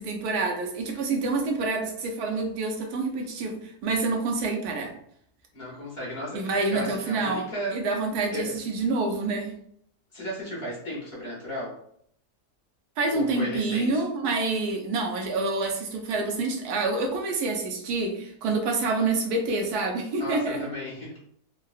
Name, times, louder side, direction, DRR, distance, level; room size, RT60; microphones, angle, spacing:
voice 1, 0.0-3.6 3.8-4.9 6.3-7.4 7.7-9.5 13.0-20.6, right 3 dB, 85° right, 1 dB, 1.2 m, -27 dB
voice 2, 5.5-7.8 8.3-8.5 10.1-11.7 13.1-14.1 20.2-21.2, left 1 dB, 45° left, -5 dB, 1.1 m, -35 dB
3.7 x 2.2 x 2.3 m, 0.68 s
omnidirectional pair, 1.6 m